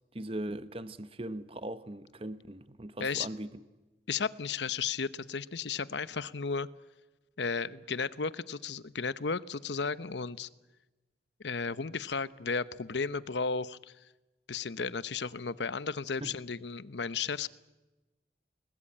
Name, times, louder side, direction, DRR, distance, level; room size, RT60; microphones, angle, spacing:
voice 1, 0.1-3.6 16.2-16.3, right 1 dB, 30° right, 0.9 m, -39 dB
voice 2, 4.1-6.7 7.4-10.5 11.4-13.9 14.5-17.5, left 5 dB, 85° left, 0.9 m, -34 dB
28.5 x 20.0 x 8.8 m
head